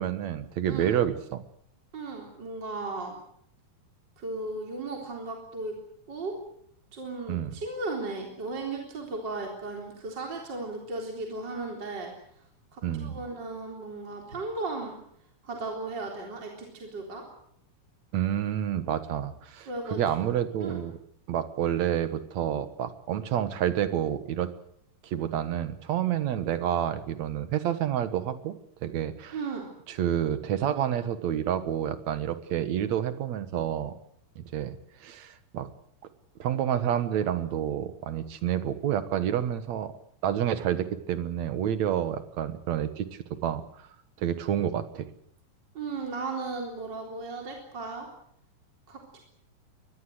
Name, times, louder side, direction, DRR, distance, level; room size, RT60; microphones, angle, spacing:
voice 1, 0.0-1.4 7.3-7.6 12.8-13.2 18.1-21.0 21.3-24.5 25.0-29.4 29.9-33.9 34.4-34.7 35.0-35.7 36.4-39.9 40.2-43.6 44.2-45.1, right 10 dB, 60° right, 12 dB, 2.5 m, -29 dB
voice 2, 1.9-3.1 4.2-5.8 6.1-6.4 6.9-12.1 12.7-15.0 15.4-17.2 19.7-20.0 20.6-20.8 29.3-29.7 45.7-48.1 48.9-49.2, right 3 dB, 30° right, 1 dB, 4.3 m, -35 dB
23.5 x 20.0 x 7.9 m, 0.69 s
omnidirectional pair, 3.8 m